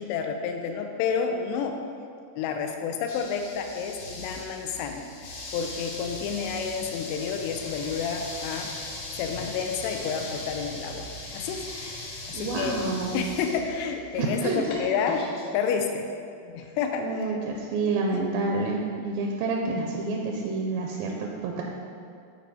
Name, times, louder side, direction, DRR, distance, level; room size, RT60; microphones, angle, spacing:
voice 1, 0.0-1.8 2.4-8.7 9.1-11.1 11.3-11.7 12.3-12.8 13.1-15.3 15.5-16.1 16.4-17.4 18.1-18.2, left 6 dB, 85° left, 4 dB, 2.7 m, -30 dB
sound 1, 3.1-15.4, left 2 dB, 70° left, 3.3 m, -39 dB
voice 2, 12.3-13.2 14.2-14.7 17.0-21.6, right 3 dB, 85° right, 0 dB, 2.1 m, -28 dB
10.5 x 4.7 x 4.1 m, 2.3 s
omnidirectional pair, 4.8 m